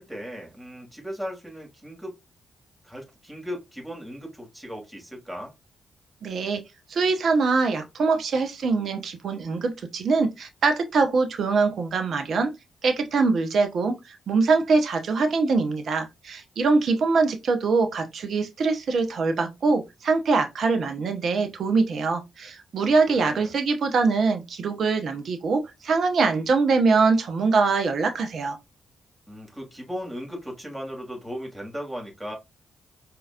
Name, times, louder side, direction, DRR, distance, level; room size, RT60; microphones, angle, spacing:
voice 1, 0.0-2.2 2.8-5.5 22.8-23.5 29.3-32.4, equal, 15° right, 2.8 m, -37 dB
voice 2, 6.2-6.6 6.9-12.5 12.8-13.9 14.3-28.6, right 4 dB, 60° right, 1.0 m, -23 dB
4.8 x 3.0 x 2.5 m
hypercardioid pair, 40°, 0 cm